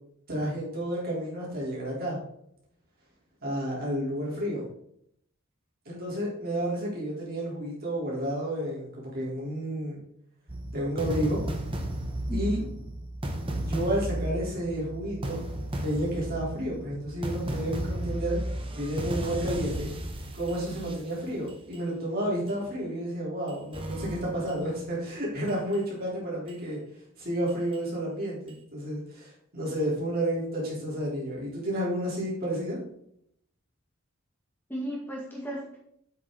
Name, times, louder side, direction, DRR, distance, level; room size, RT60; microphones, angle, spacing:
voice 1, 0.3-2.2 3.4-4.7 5.9-10.0 10.7-11.4 12.3-12.6 13.5-15.4 15.7-18.4 18.7-19.9 20.3-26.8 27.2-32.8, right 1 dB, 45° right, -5 dB, 3.7 m, -31 dB
sound 1, 10.5-21.8 22.5-22.6 23.5-24.7 25.5-25.8 26.5-26.6 27.5-27.8 28.5-28.6, right 1 dB, 25° right, 1.0 m, -34 dB
voice 2, 12.3-12.7 34.7-35.8, equal, 10° left, -3 dB, 2.0 m, -35 dB
7.9 x 7.4 x 4.0 m, 0.71 s
head